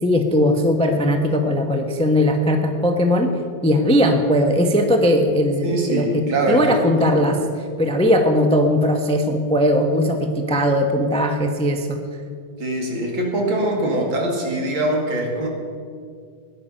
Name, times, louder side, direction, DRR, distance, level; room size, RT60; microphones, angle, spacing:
voice 1, 0.0-3.3 3.6-7.4 7.8-12.0, equal, 5° left, 5 dB, 0.4 m, -19 dB
voice 2, 5.6-7.3 12.6-15.5, right 1 dB, 80° right, 0 dB, 3.0 m, -23 dB
18.0 x 10.5 x 5.6 m, 2.2 s
omnidirectional pair, 2.2 m